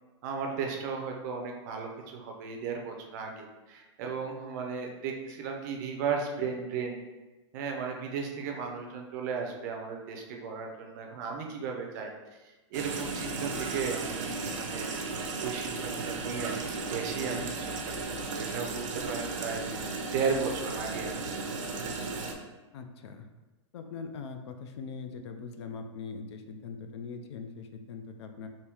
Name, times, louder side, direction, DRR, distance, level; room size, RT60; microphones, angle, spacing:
voice 1, 0.2-7.0 7.5-12.1 12.4-14.9 15.4-17.7 18.1-21.5, right 5 dB, 35° right, 2 dB, 0.5 m, -35 dB
sound 1, 12.7-22.3, right 3 dB, 85° right, 0.6 m, -35 dB
voice 2, 22.7-23.3 23.7-28.5, left 5 dB, 60° left, 6 dB, 0.4 m, -41 dB
3.5 x 2.6 x 2.9 m, 1.2 s
supercardioid pair, 165°, 16 cm